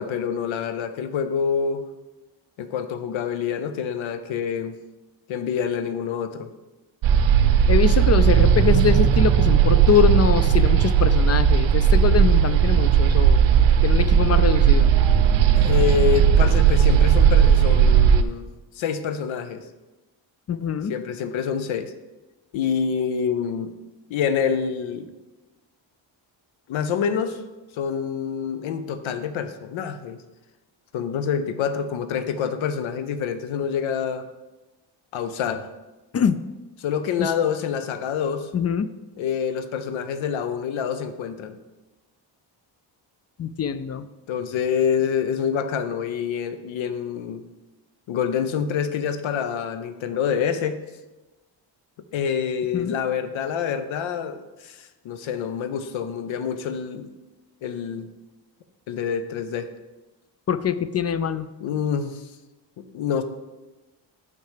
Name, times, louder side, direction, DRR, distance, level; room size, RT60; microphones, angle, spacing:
voice 1, 0.0-1.9 2.6-4.8 5.3-6.5 15.6-18.5 18.8-19.6 20.9-21.9 22.5-23.7 24.1-25.1 26.7-27.4 27.7-30.2 30.9-34.3 35.1-35.7 36.8-38.5 39.2-41.6 44.3-47.5 48.1-50.8 52.1-57.1 57.6-58.1 58.9-59.7 61.6-62.3 62.8-63.2, left 7 dB, 90° left, 11 dB, 0.7 m, -26 dB
sound 1, 7.0-18.2, right 8 dB, 70° right, 0.6 m, -17 dB
voice 2, 7.7-13.5 13.8-14.9 20.5-20.9 36.1-36.4 37.2-37.3 38.5-38.9 43.4-44.1 52.7-52.9 60.5-61.5, left 7 dB, 35° left, 14 dB, 0.4 m, -23 dB
6.4 x 5.8 x 5.0 m, 1.1 s
cardioid pair, 75°, 46 cm